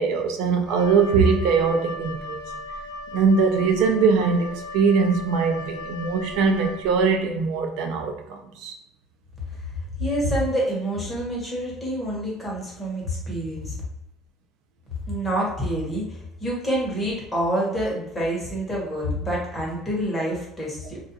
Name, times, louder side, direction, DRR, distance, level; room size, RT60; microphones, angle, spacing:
voice 1, 0.0-2.5 3.1-8.7, right 5 dB, 75° right, 0.3 m, -21 dB
Wind instrument woodwind instrument, 0.6-7.2, left 2 dB, 85° left, 0.4 m, -37 dB
voice 2, 10.0-13.8 15.1-21.0, equal, 10° left, 1.0 m, -27 dB
2.3 x 2.2 x 2.8 m
cardioid pair, 140°, 0 cm